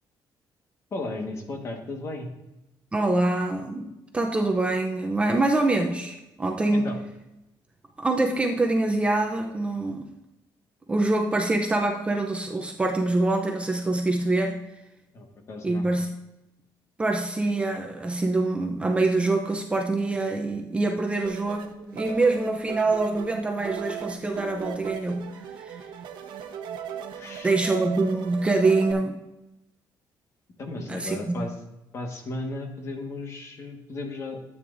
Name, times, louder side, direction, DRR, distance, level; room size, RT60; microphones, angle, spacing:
voice 1, 0.9-2.3 6.7-7.0 15.1-15.9 27.1-27.7 30.6-31.5 31.9-34.4, left 2 dB, 35° left, 3 dB, 1.5 m, -35 dB
voice 2, 2.9-6.9 8.0-10.1 10.9-14.6 15.6-16.1 17.0-25.3 25.6-25.9 27.4-29.2 30.9-31.5, right 2 dB, 15° right, 2 dB, 0.6 m, -25 dB
sound 1, 21.2-28.9, right 8 dB, 75° right, 1.0 m, -38 dB
12.5 x 8.6 x 2.6 m, 0.96 s
cardioid pair, 170°, 8 cm